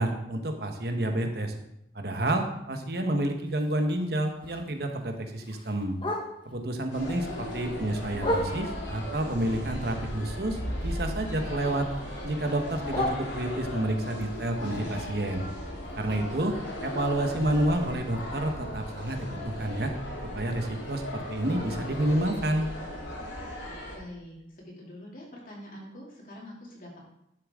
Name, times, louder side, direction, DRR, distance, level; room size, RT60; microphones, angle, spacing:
voice 1, 0.0-1.5 1.9-5.9 6.5-11.9 12.2-15.4 16.0-16.5 16.8-19.9 20.3-22.7, right 1 dB, 55° right, 4 dB, 1.1 m, -29 dB
Bark, 3.5-6.7 7.1-9.0 9.4-11.3 11.5-13.9 14.3-18.2 18.5-18.6 18.9-19.3 19.8-19.9 20.2-20.3 20.8-20.9, equal, 25° left, 1.2 m, -37 dB
sound 1, 6.9-24.0, left 1 dB, 80° left, 2.7 m, -37 dB
voice 2, 7.4-7.9 23.9-27.0, left 1 dB, 45° left, -3 dB, 2.6 m, -45 dB
11.0 x 7.2 x 3.6 m, 0.82 s
head